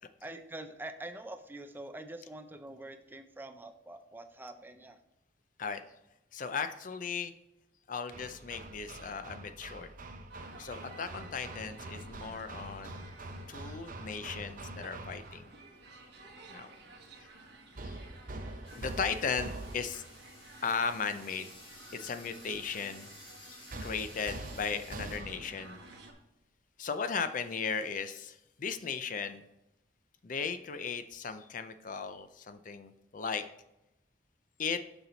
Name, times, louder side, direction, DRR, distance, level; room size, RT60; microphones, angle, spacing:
voice 1, 0.2-5.0, right 1 dB, 10° right, 8 dB, 0.4 m, -45 dB
voice 2, 6.3-7.3 7.9-9.9 10.6-13.0 13.5-15.5 16.5-16.7 17.8-17.9 18.8-20.0 20.6-21.5 21.9-23.1 23.4-25.8 26.8-29.4 30.2-33.4 34.6-34.8, left 5 dB, 45° left, 10 dB, 0.5 m, -36 dB
Hammer, 8.1-15.5 17.8-20.2 23.7-25.6, right 2 dB, 50° right, 0.7 m, -44 dB
sound 1, 10.3-26.1, right 2 dB, 65° right, 1.3 m, -54 dB
sound 2, 18.6-25.2, left 1 dB, 30° left, 2.3 m, -54 dB
6.8 x 6.0 x 3.9 m, 0.87 s
head